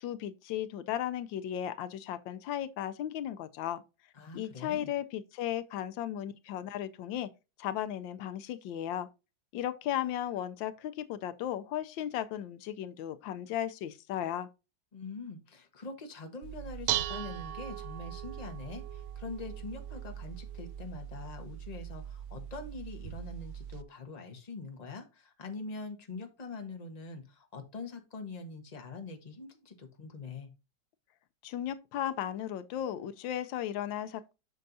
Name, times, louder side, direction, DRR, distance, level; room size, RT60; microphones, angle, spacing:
voice 1, 0.0-3.8 4.3-7.3 7.6-9.1 9.5-14.5 31.4-34.3, left 11 dB, 85° left, 1.4 m, -35 dB
voice 2, 4.1-4.9 14.9-30.5, left 3 dB, 25° left, 1.2 m, -44 dB
Dishes pots and pans, 16.4-23.8, right 11 dB, 75° right, 0.8 m, -39 dB
7.9 x 6.4 x 2.7 m
omnidirectional pair, 2.0 m